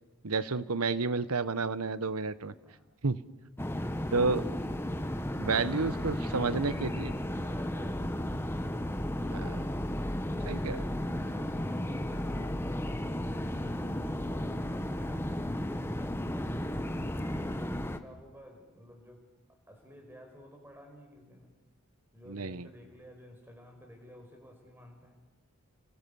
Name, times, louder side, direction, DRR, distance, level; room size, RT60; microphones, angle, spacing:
voice 1, 0.2-2.5 3.0-3.2 4.1-4.5 5.4-7.1 9.3-9.7 10.5-10.8 22.3-22.7, right 4 dB, 85° right, 15 dB, 1.0 m, -30 dB
sound 1, 3.6-18.0, left 1 dB, 10° left, 1.1 m, -34 dB
voice 2, 6.1-8.3 10.2-21.6 22.1-25.3, equal, 10° right, 3 dB, 5.2 m, -52 dB
30.0 x 25.0 x 7.0 m, 1.1 s
head